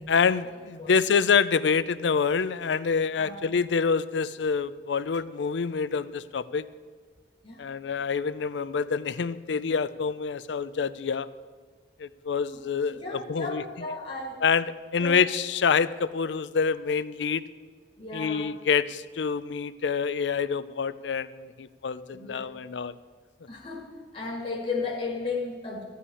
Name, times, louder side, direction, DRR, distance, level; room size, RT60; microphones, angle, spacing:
voice 1, 0.1-6.6 7.6-11.3 12.0-13.0 13.3-13.6 14.4-14.6 14.9-17.4 18.1-22.9, left 5 dB, 80° left, 15 dB, 0.4 m, -26 dB
voice 2, 12.9-14.5 15.0-15.2 18.0-18.5 22.1-22.5 23.5-25.8, left 3 dB, 35° left, -2 dB, 1.6 m, -35 dB
14.5 x 5.6 x 9.8 m, 1.5 s
head